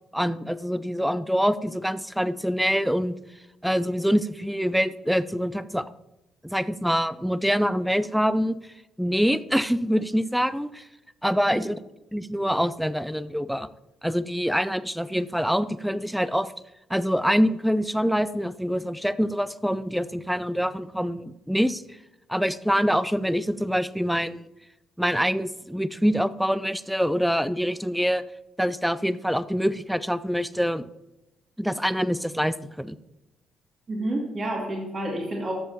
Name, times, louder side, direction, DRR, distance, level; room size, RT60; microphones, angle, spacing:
voice 1, 0.1-3.1 3.6-5.8 6.4-8.6 9.0-10.8 11.2-11.8 12.1-13.7 14.0-16.5 16.9-21.8 22.3-24.4 25.0-28.2 28.6-30.9 31.6-33.0, equal, ahead, 16 dB, 0.5 m, -25 dB
voice 2, 33.9-35.5, right 1 dB, 35° right, 0 dB, 2.2 m, -29 dB
13.5 x 7.4 x 2.8 m, 0.93 s
figure-of-eight pair, 45°, 0 cm